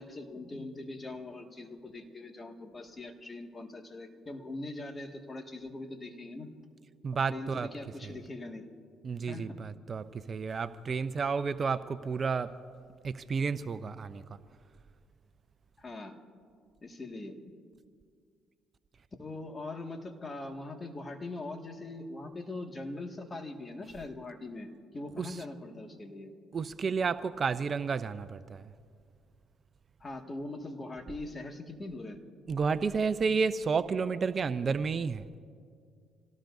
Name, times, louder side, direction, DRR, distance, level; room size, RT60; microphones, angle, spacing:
voice 1, 0.0-6.5 7.3-8.7 9.3-9.6 15.8-16.2 16.8-17.5 19.2-26.4 30.0-32.2, left 2 dB, 30° left, 3 dB, 1.9 m, -42 dB
voice 2, 7.0-7.7 8.0-8.1 9.0-12.5 13.0-14.4 25.2-25.4 26.5-28.7 32.5-35.2, right 5 dB, 40° right, 12 dB, 0.6 m, -31 dB
27.5 x 18.0 x 2.7 m, 2.2 s
supercardioid pair, 75°, 0 cm